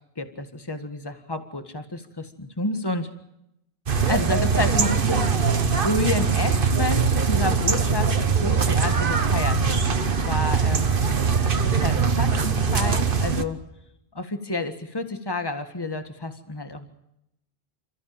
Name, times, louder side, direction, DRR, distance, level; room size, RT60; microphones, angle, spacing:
voice 1, 0.2-3.1 4.0-5.5 5.8-8.1 8.4-11.0 11.6-13.6 14.1-16.9, left 2 dB, 25° left, 8 dB, 1.8 m, -30 dB
sound 1, 3.9-13.4, right 5 dB, 60° right, 1.4 m, -22 dB
28.5 x 15.0 x 8.9 m, 0.82 s
omnidirectional pair, 1.0 m